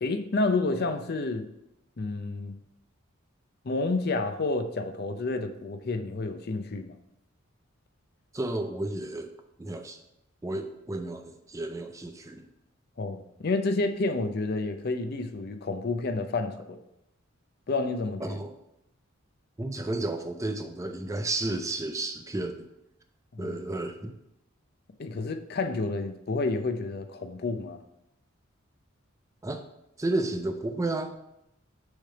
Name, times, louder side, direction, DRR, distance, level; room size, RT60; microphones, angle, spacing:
voice 1, 0.0-1.5 2.0-2.6 3.6-7.0 13.0-16.8 17.7-18.4 23.3-23.6 25.0-27.8, left 3 dB, 50° left, 7 dB, 0.5 m, -30 dB
voice 2, 8.3-9.3 9.6-10.0 10.4-12.5 18.2-18.5 19.6-22.6 23.4-24.1 29.4-29.6 30.0-31.1, right 2 dB, 15° right, 6 dB, 0.4 m, -32 dB
6.3 x 3.3 x 5.7 m, 0.84 s
head